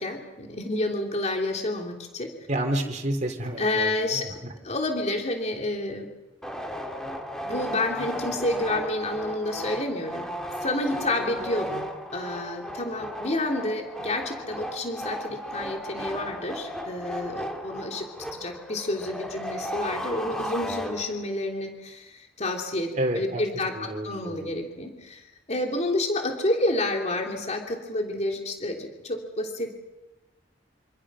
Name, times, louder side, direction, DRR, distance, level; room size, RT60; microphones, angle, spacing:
voice 1, 0.0-2.3 3.6-4.3 4.6-6.1 7.4-10.2 10.6-29.7, left 2 dB, 35° left, 2 dB, 3.2 m, -29 dB
voice 2, 2.5-4.5 23.0-23.4 23.7-24.5, right 1 dB, 40° right, 3 dB, 3.3 m, -30 dB
sound 1, 6.4-21.4, equal, 5° left, 3.1 m, -35 dB
27.5 x 26.5 x 6.3 m, 1.1 s
head